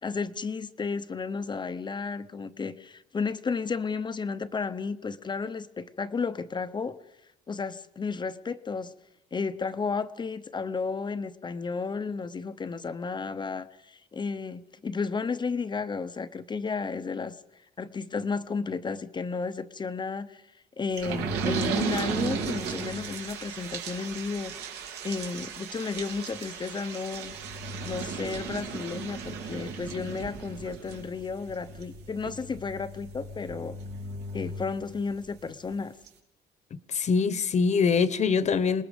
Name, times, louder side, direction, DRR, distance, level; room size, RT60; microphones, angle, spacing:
voice 1, 0.0-7.0 7.5-8.9 9.3-17.4 17.8-20.4 20.8-27.3 27.8-33.7 34.3-35.9, left 5 dB, 25° left, 0.9 m, -33 dB
sound 1, 21.0-35.3 35.7-35.8 36.1-36.2, right 5 dB, 85° right, 3.1 m, -35 dB
voice 2, 36.7-38.8, left 5 dB, 45° left, 1.2 m, -24 dB
27.5 x 20.0 x 5.3 m
cardioid pair, 110°, 17 cm